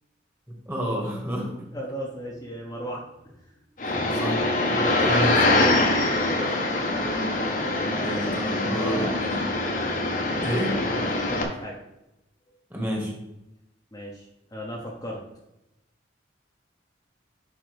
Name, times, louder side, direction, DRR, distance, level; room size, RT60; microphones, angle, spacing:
voice 1, 0.7-1.6 3.8-5.6 8.0-9.5 10.4-10.9 12.7-13.1, equal, 10° right, -1 dB, 1.7 m, -30 dB
voice 2, 1.7-3.5 6.0-6.6 7.7-8.2 8.6-9.1 11.1-11.8 13.9-15.2, equal, 20° left, -4 dB, 1.1 m, -36 dB
sound 1, 3.8-11.4, left 2 dB, 45° left, 1.1 m, -24 dB
10.5 x 5.2 x 3.4 m, 0.90 s
head